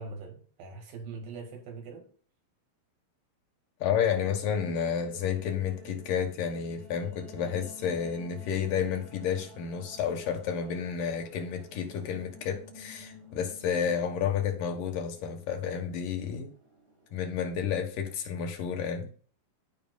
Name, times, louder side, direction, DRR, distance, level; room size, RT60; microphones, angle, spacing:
voice 1, 0.0-2.1, right 4 dB, 80° right, 3.6 m, -42 dB
voice 2, 3.8-16.5 17.1-19.1, left 7 dB, 75° left, 2.8 m, -31 dB
sound 1, 4.1-18.2, right 1 dB, 55° right, 5.6 m, -52 dB
15.0 x 5.1 x 2.3 m
omnidirectional pair, 4.0 m